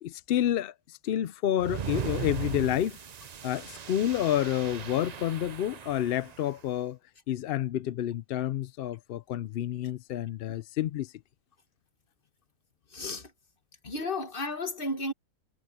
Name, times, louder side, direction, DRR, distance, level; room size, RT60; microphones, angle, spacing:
voice 1, 0.0-3.0 3.4-7.0 7.3-11.1, left 11 dB, 75° left, 0.5 m, -29 dB
sound 1, 1.6-6.5, right 8 dB, 60° right, 0.4 m, -38 dB
voice 2, 12.9-13.3 13.8-15.1, left 2 dB, 40° left, 1.8 m, -33 dB
omnidirectional pair, 1.5 m